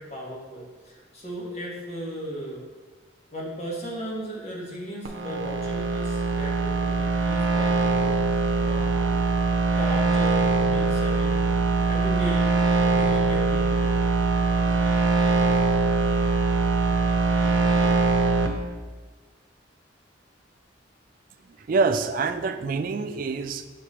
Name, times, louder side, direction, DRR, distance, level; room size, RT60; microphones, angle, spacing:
voice 1, 0.0-2.6 3.3-9.2 9.8-14.0, right 1 dB, 35° left, -4 dB, 1.5 m, -36 dB
sound 1, 5.1-18.5, right 3 dB, 85° right, 0.7 m, -22 dB
voice 2, 21.6-23.7, right 4 dB, 45° right, 9 dB, 0.3 m, -26 dB
5.9 x 3.2 x 5.7 m, 1.3 s
head